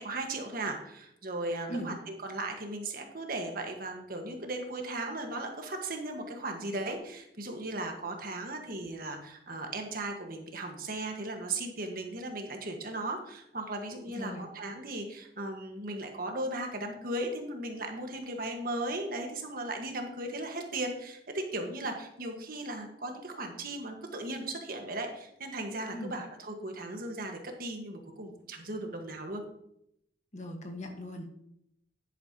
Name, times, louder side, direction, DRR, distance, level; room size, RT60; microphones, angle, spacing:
voice 1, 0.0-29.4, right 2 dB, 55° right, 3 dB, 1.5 m, -37 dB
voice 2, 14.1-14.5 25.9-26.1 30.3-31.3, equal, 40° left, 3 dB, 1.4 m, -39 dB
10.5 x 9.0 x 2.9 m, 0.77 s
head